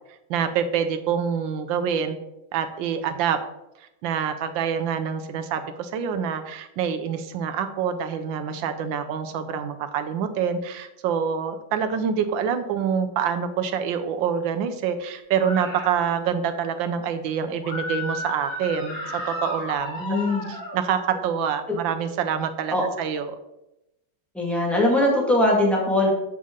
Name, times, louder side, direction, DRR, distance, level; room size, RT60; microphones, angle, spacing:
voice 1, 0.3-2.2 2.5-3.4 4.0-20.0 20.5-23.4, right 7 dB, 75° right, 9 dB, 1.3 m, -26 dB
sound 1, 15.4-15.9 17.6-20.8, left 1 dB, 75° left, 2.6 m, -33 dB
voice 2, 20.0-20.5 22.7-22.9 24.3-26.1, left 1 dB, ahead, -3 dB, 1.2 m, -21 dB
7.5 x 5.5 x 3.6 m, 0.89 s
omnidirectional pair, 2.3 m